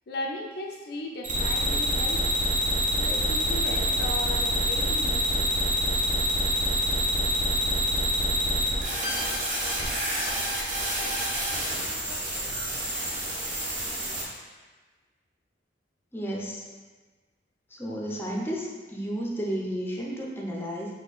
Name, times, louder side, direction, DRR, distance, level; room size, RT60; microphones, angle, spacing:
voice 1, 0.1-2.4 3.0-5.5 10.9-11.2, left 1 dB, 60° left, 1 dB, 0.4 m, -36 dB
sound 1, 1.2-14.2, right 1 dB, 45° right, 0.9 m, -27 dB
voice 2, 16.1-16.6 17.7-20.9, equal, 15° left, -3 dB, 0.6 m, -32 dB
4.3 x 2.7 x 4.1 m, 1.4 s
head